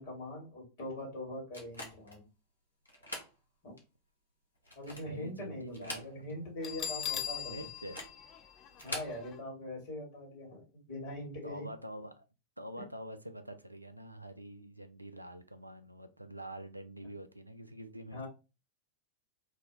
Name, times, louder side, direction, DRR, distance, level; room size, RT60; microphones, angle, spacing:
voice 1, 0.0-2.3 3.6-3.7 4.7-7.6 8.8-11.7 18.1-18.3, left 1 dB, 50° left, 1.4 m, -42 dB
sound 1, 1.5-2.2 2.9-3.3 3.8-3.9 4.6-5.2 5.7-6.5 6.7-6.8 7.8-8.2 8.7-9.2, left 1 dB, 80° left, 0.7 m, -44 dB
voice 2, 5.0-6.5 7.5-8.1 11.4-12.2 12.6-18.3, right 1 dB, 85° right, 0.3 m, -46 dB
Bell, 6.6-9.3, left 9 dB, 30° left, 0.3 m, -40 dB
2.6 x 2.1 x 3.6 m
figure-of-eight pair, 90°, 0 cm